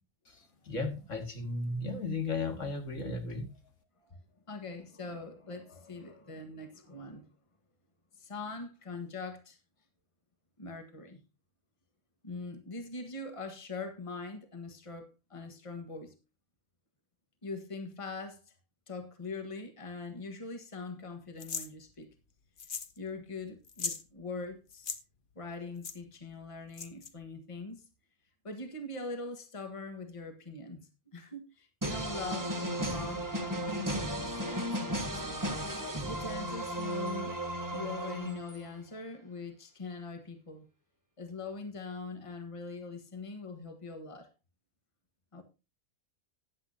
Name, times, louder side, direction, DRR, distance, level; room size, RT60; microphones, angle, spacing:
voice 1, 0.3-3.5, left 3 dB, 75° left, 2.5 m, -35 dB
voice 2, 4.5-7.3 8.1-9.6 10.6-11.2 12.2-16.1 17.4-18.5 18.9-22.1 23.0-24.9 25.3-27.8 28.4-35.5 36.0-37.4 37.7-40.6 41.2-44.3 45.3-45.4, left 3 dB, 25° left, 1.6 m, -42 dB
sound 1, 21.4-21.7 22.6-23.0 23.2-23.3 23.6-24.0 24.7-25.0 25.8-26.0 26.7-27.1, left 6 dB, 45° left, 1.1 m, -37 dB
sound 2, 31.8-38.8, right 1 dB, 15° right, 1.2 m, -35 dB
15.0 x 10.0 x 2.8 m
omnidirectional pair, 1.3 m